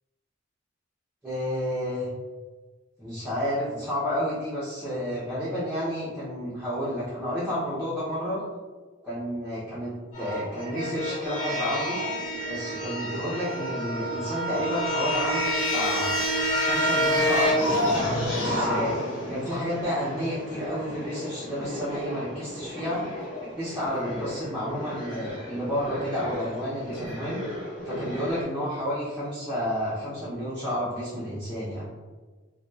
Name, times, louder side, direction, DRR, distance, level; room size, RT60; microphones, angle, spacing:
voice 1, 1.2-2.1 3.0-8.4 9.0-12.0 12.4-16.2 16.7-18.0 18.4-23.0 23.4-27.4 27.8-31.8, equal, 5° right, -10 dB, 0.6 m, -31 dB
sound 1, 10.1-28.4, equal, 85° left, 1.1 m, -29 dB
2.7 x 2.1 x 2.2 m, 1.3 s
head